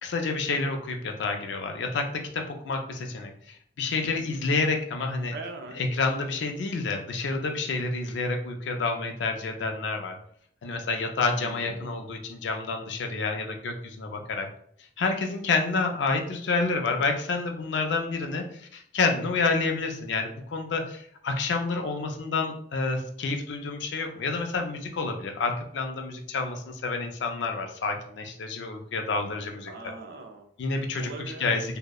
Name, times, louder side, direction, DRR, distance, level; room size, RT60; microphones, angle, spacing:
voice 1, 0.0-5.3 5.7-10.2 10.6-14.5 15.0-29.7 30.6-31.8, left 3 dB, 75° left, 4 dB, 0.4 m, -29 dB
voice 2, 5.3-5.8 11.3-11.9 29.7-30.5 31.0-31.6, right 3 dB, 55° right, 3 dB, 0.4 m, -41 dB
2.7 x 2.0 x 2.3 m, 0.65 s
head